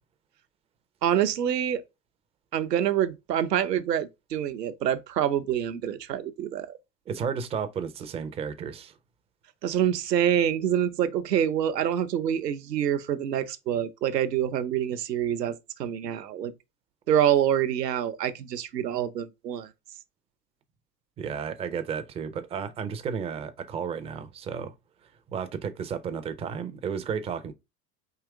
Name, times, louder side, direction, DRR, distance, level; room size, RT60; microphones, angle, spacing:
voice 1, 1.0-1.8 2.5-6.8 9.6-16.5 17.1-19.7, right 10 dB, 85° right, 0.7 m, -26 dB
voice 2, 7.1-8.9 21.2-24.7 25.3-27.5, right 6 dB, 15° right, 0.3 m, -33 dB
4.8 x 3.0 x 3.4 m
hypercardioid pair, 90°, 47 cm